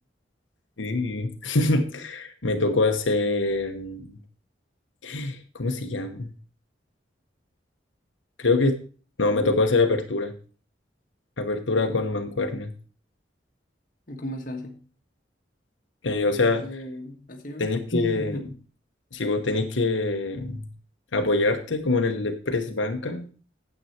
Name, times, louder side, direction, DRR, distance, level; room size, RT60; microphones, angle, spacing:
voice 1, 0.8-4.2 5.0-6.3 8.4-8.8 9.2-10.3 11.4-12.7 16.0-16.6 17.6-18.4 19.1-20.7 21.1-23.3, left 3 dB, 90° left, 5 dB, 1.1 m, -25 dB
voice 2, 14.1-14.8 16.3-18.5, left 1 dB, 45° left, 3 dB, 1.5 m, -35 dB
9.4 x 7.9 x 4.3 m, 0.39 s
head